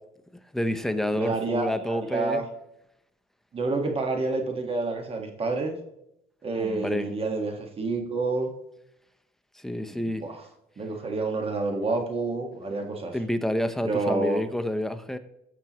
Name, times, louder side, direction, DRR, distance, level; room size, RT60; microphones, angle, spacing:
voice 1, 0.5-2.4 6.6-7.1 9.6-10.2 13.1-15.2, left 1 dB, ahead, 8 dB, 0.7 m, -28 dB
voice 2, 1.1-2.4 3.5-5.7 6.4-8.5 9.9-10.5 10.8-13.1 13.8-14.4, right 3 dB, 35° right, 4 dB, 1.6 m, -28 dB
15.5 x 6.0 x 3.0 m, 0.81 s
cardioid pair, 110°, 17 cm